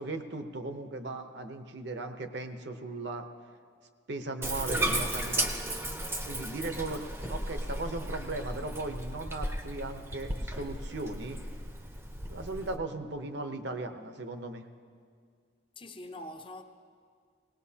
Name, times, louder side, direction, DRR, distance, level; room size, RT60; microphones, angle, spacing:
voice 1, 0.0-3.3 4.1-5.5 6.2-7.0 7.3-11.4 12.3-14.7, right 2 dB, 55° right, 0.8 m, -37 dB
Bathtub (filling or washing), 4.4-12.8, right 1 dB, 10° right, 0.7 m, -35 dB
voice 2, 15.8-16.6, left 1 dB, 25° left, 0.6 m, -44 dB
19.0 x 18.5 x 2.8 m
head